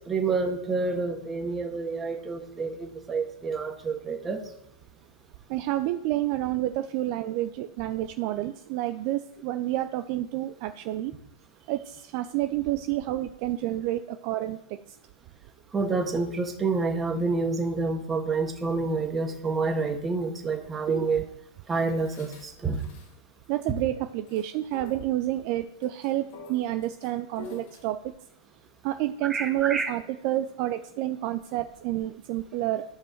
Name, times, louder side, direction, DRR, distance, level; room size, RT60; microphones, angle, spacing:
voice 1, 0.1-4.4 15.7-21.2 21.7-22.8 29.3-29.9, right 4 dB, 15° right, 3 dB, 1.6 m, -28 dB
voice 2, 5.5-11.1 11.7-14.8 20.9-21.1 23.5-28.1 28.8-32.8, right 14 dB, 50° right, 9 dB, 0.5 m, -29 dB
sound 1, 22.0-23.1 23.4-23.5 24.1-24.5 24.7-25.1 25.8-27.9, left 4 dB, 60° left, 2.4 m, -46 dB
11.5 x 5.4 x 4.6 m, 0.81 s
hypercardioid pair, 110°, 0 cm